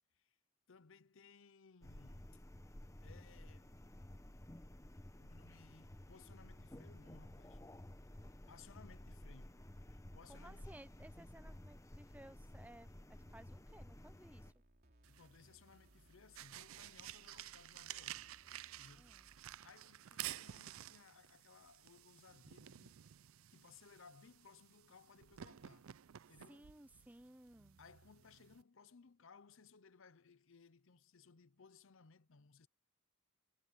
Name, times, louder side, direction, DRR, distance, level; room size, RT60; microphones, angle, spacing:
voice 1, 0.7-2.3 3.0-3.7 5.2-7.6 8.5-9.6 9.9-10.7 15.1-18.4 18.8-23.0 23.5-25.9 26.3-26.7 27.8-32.7, left 5 dB, 70° left, 0.7 m, -63 dB
sound 1, 1.8-14.5, left 1 dB, 15° left, 0.9 m, -54 dB
voice 2, 10.3-14.5 19.0-19.3 26.5-27.8, right 1 dB, 10° right, 0.7 m, -59 dB
sound 2, 13.2-19.6, right 1 dB, 50° right, 3.1 m, -69 dB
sound 3, 15.0-28.6, right 12 dB, 75° right, 0.5 m, -52 dB
head